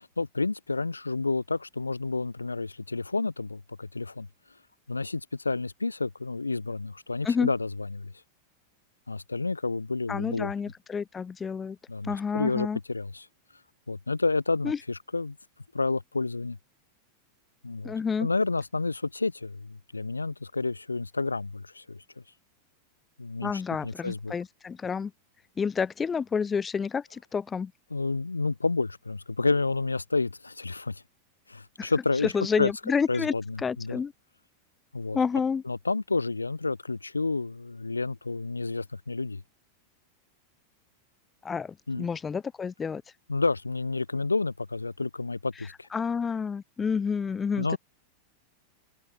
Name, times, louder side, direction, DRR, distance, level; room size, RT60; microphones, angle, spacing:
voice 1, 0.0-4.3 4.9-8.1 9.1-10.5 11.9-13.3 13.9-15.4 15.7-16.6 17.6-17.9 18.2-22.0 23.2-24.3 27.9-31.0 31.5-32.3 32.6-32.7 33.1-34.0 34.9-35.2 35.7-39.4 41.9-42.1 43.3-45.9 47.6-47.8, left 3 dB, 80° left, 1.0 m, -30 dB
voice 2, 10.1-11.8 12.0-12.8 14.6-14.8 17.8-18.3 23.4-25.1 25.6-27.7 31.8-31.9 32.3-34.1 35.1-35.6 41.4-43.0 45.6-47.8, left 6 dB, 20° left, 0.4 m, -29 dB
open air
figure-of-eight pair, 90°, 0 cm